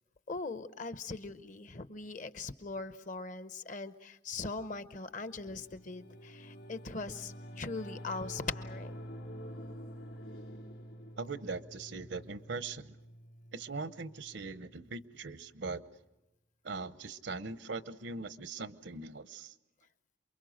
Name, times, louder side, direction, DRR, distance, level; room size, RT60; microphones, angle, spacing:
voice 1, 0.3-8.9, left 3 dB, 45° left, 12 dB, 0.8 m, -40 dB
Singing / Musical instrument, 5.3-15.0, equal, 70° left, 4.2 m, -48 dB
voice 2, 11.2-13.0 13.5-15.8 16.6-19.5, right 4 dB, 70° right, 13 dB, 0.9 m, -41 dB
28.0 x 23.0 x 6.4 m, 0.97 s
head